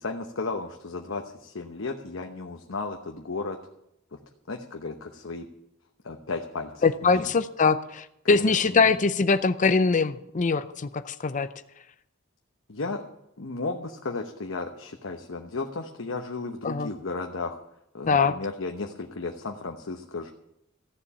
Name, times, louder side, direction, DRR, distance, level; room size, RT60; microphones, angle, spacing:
voice 1, 0.0-3.6 4.1-4.2 4.5-5.5 6.0-7.3 8.2-8.9 12.7-13.0 13.4-17.6 17.9-20.3, left 3 dB, 70° left, 3 dB, 1.0 m, -34 dB
voice 2, 6.8-11.5 16.6-16.9 18.1-18.3, left 4 dB, 40° left, 11 dB, 0.5 m, -23 dB
14.5 x 7.1 x 8.6 m, 0.80 s
head